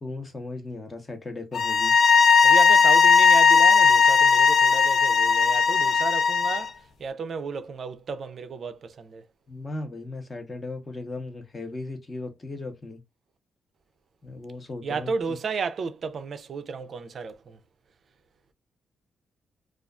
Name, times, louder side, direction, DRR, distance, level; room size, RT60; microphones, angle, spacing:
voice 1, 0.0-1.9 9.5-13.0 14.2-15.4, left 2 dB, 25° left, 0.8 m, -37 dB
sound 1, 1.5-6.7, left 5 dB, 60° left, 0.3 m, -18 dB
voice 2, 2.4-6.7 7.0-9.2 14.8-17.6, right 5 dB, 50° right, 0.4 m, -33 dB
2.4 x 2.3 x 2.3 m
cardioid pair, 120°, 0 cm